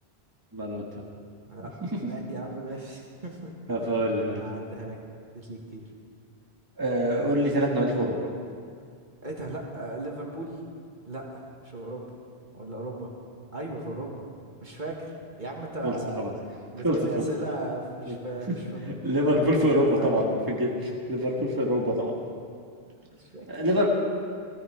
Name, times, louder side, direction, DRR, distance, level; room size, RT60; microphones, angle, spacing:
voice 1, 0.5-0.8 3.7-4.4 6.8-8.2 15.8-16.3 16.8-17.2 18.1-18.2 18.8-22.2 23.5-23.9, equal, 20° right, -2 dB, 1.5 m, -25 dB
voice 2, 2.0-4.0 4.3-5.0 5.3-5.9 9.2-10.6 11.1-12.1 12.5-13.1 13.5-14.3 14.6-19.1 19.4-20.1 22.9-23.5, right 1 dB, 45° right, -1 dB, 1.9 m, -37 dB
18.0 x 14.5 x 4.6 m, 2.2 s
omnidirectional pair, 1.1 m